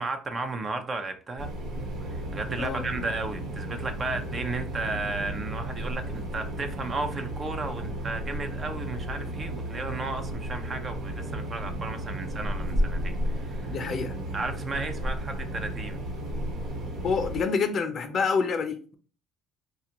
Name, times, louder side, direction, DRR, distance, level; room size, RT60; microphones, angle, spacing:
voice 1, 0.0-1.5 2.1-13.8 14.3-16.0, right 3 dB, 35° right, 0.7 m, -34 dB
sound 1, 1.4-17.4, right 1 dB, 65° right, 1.2 m, -33 dB
voice 2, 13.7-14.2 17.0-18.9, left 5 dB, 50° left, 0.6 m, -27 dB
4.1 x 2.4 x 2.9 m
supercardioid pair, 80°, 0 cm